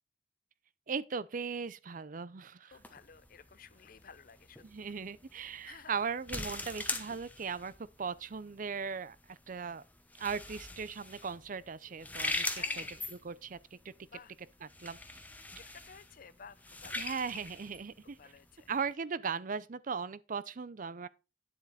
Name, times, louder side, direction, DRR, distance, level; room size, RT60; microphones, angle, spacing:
voice 1, 0.9-2.7 4.6-7.7 8.0-9.8 10.2-13.9 14.6-15.0 17.0-18.2 18.7-21.1, right 5 dB, 50° right, 0.5 m, -38 dB
voice 2, 2.6-4.9 5.6-5.9 12.5-12.9 14.1-14.3 15.6-17.2 18.2-18.7, left 6 dB, 55° left, 0.6 m, -54 dB
sound 1, 2.7-18.9, left 2 dB, 10° left, 1.0 m, -42 dB
9.9 x 7.5 x 4.1 m
head